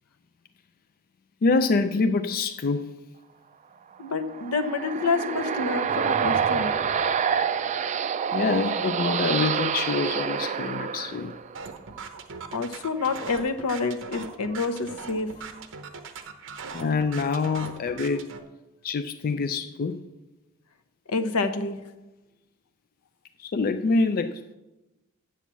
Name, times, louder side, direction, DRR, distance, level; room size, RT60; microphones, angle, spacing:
voice 1, 1.4-2.9 8.3-11.3 16.7-18.3 18.8-20.0 23.4-24.5, left 4 dB, 40° left, 0.3 m, -26 dB
voice 2, 4.0-6.7 12.5-15.3 21.1-21.8, left 4 dB, 80° left, 0.8 m, -28 dB
sound 1, 4.1-11.7, right 7 dB, 35° right, 0.3 m, -27 dB
sound 2, 11.5-18.4, right 5 dB, 60° right, 0.8 m, -40 dB
7.1 x 7.0 x 7.2 m
head